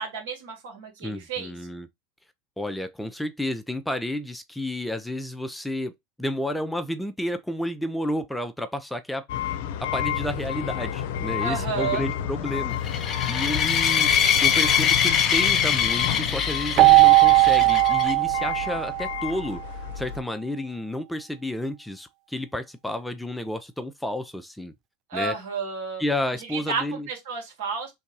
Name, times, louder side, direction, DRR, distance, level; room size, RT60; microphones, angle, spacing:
voice 1, 0.0-1.5 11.4-12.0 25.1-26.0 26.5-27.9, right 5 dB, 75° right, 2.1 m, -31 dB
voice 2, 1.0-1.9 2.6-5.9 6.2-9.3 9.8-12.8 13.3-14.1 14.4-19.6 20.0-24.7 25.1-25.3 26.0-27.1, left 1 dB, 5° left, 0.6 m, -31 dB
sound 1, 9.3-20.2, left 10 dB, 70° left, 0.6 m, -31 dB
sound 2, 12.8-18.1, left 8 dB, 35° left, 0.9 m, -23 dB
Keyboard (musical), 16.8-19.4, right 23 dB, 50° right, 0.4 m, -18 dB
3.4 x 2.7 x 4.6 m
hypercardioid pair, 90°, 0 cm